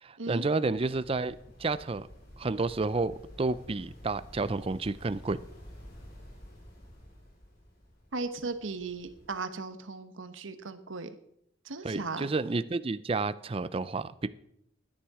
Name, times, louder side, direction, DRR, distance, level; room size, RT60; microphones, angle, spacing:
voice 1, 0.0-2.1 2.4-5.4 11.8-14.3, right 3 dB, 30° right, 0.5 m, -30 dB
sound 1, 0.6-9.3, equal, 50° left, 4.1 m, -51 dB
voice 2, 8.1-11.1 11.6-12.3, right 3 dB, 85° right, 1.1 m, -37 dB
12.5 x 10.0 x 4.9 m
head